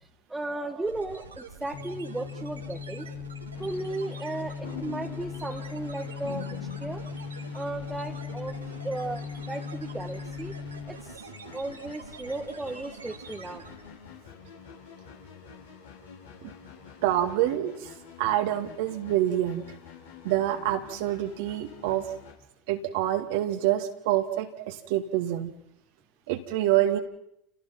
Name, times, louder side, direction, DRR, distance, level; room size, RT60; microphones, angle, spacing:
voice 1, 0.3-3.1 3.6-6.5 6.8-7.0 7.5-8.6 8.8-10.5 10.9-11.2 11.5-13.6, right 2 dB, 10° right, 2 dB, 1.6 m, -35 dB
sound 1, 0.8-14.0, right 4 dB, 85° right, 2.4 m, -46 dB
sound 2, 1.7-11.1, left 6 dB, 45° left, 1.9 m, -39 dB
sound 3, 3.5-22.3, left 7 dB, 80° left, 5.4 m, -47 dB
voice 2, 17.0-19.6 20.2-22.1 22.7-25.5 26.3-27.0, right 13 dB, 60° right, 5 dB, 2.0 m, -27 dB
29.5 x 18.0 x 6.0 m, 0.78 s
figure-of-eight pair, 75°, 0 cm